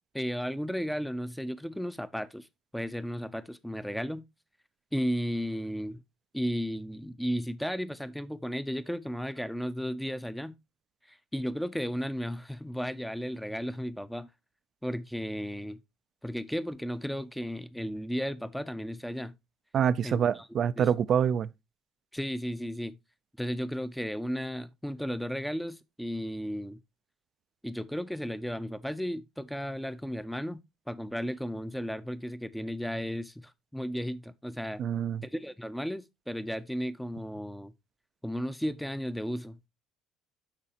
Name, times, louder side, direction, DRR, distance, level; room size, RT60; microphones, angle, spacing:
voice 1, 0.1-2.5 2.7-4.2 4.9-6.0 6.3-10.6 11.1-14.3 14.8-15.8 16.2-19.4 20.0-20.5 20.8-20.9 22.1-23.0 23.4-26.8 27.6-30.6 30.9-34.8 35.2-37.7 38.2-39.7, equal, 5° left, 0.6 m, -34 dB
voice 2, 19.7-21.5 34.8-35.2, right 8 dB, 55° right, 0.4 m, -26 dB
12.0 x 4.1 x 2.8 m
supercardioid pair, 80°, 0 cm